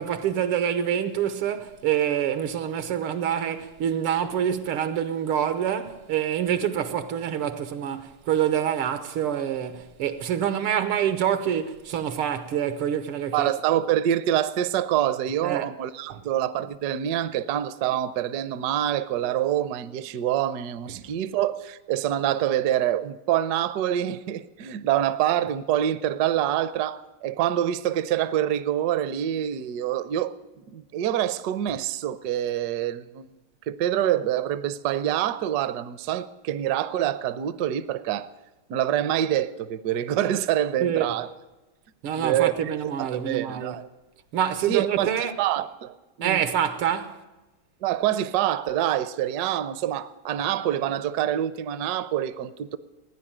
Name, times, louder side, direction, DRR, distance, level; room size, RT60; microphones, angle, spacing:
voice 1, 0.0-13.5 15.4-15.7 16.1-16.2 20.9-21.0 40.8-41.1 42.0-43.8 44.3-45.4 46.2-47.2, right 9 dB, 90° right, 1.9 m, -26 dB
voice 2, 13.3-33.3 33.7-38.3 38.7-41.3 42.2-42.5 43.0-43.9 44.7-46.4 47.8-52.8, right 11 dB, 70° right, 1.0 m, -26 dB
16.0 x 9.9 x 8.8 m
omnidirectional pair, 2.3 m